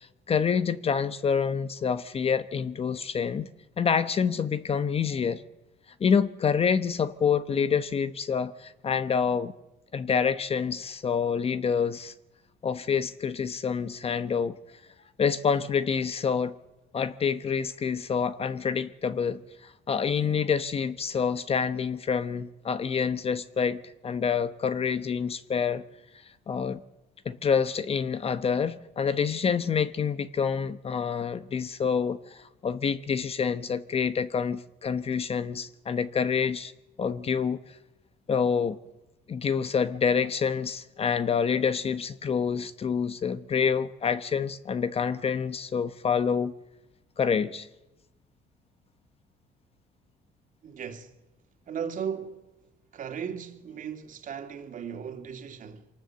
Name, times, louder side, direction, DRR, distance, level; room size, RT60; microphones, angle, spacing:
voice 1, 0.3-3.5 3.8-5.4 6.0-9.5 9.9-12.1 12.6-14.6 15.2-16.5 16.9-19.4 19.9-25.8 26.5-26.8 27.2-36.7 37.0-37.6 38.3-38.8 39.3-46.5 47.2-47.7, left 6 dB, 35° left, 0.9 m, -27 dB
voice 2, 50.6-51.1 51.7-52.4 52.9-55.9, right 7 dB, 50° right, 2.6 m, -36 dB
24.5 x 18.5 x 7.8 m
cardioid pair, 110°, 17 cm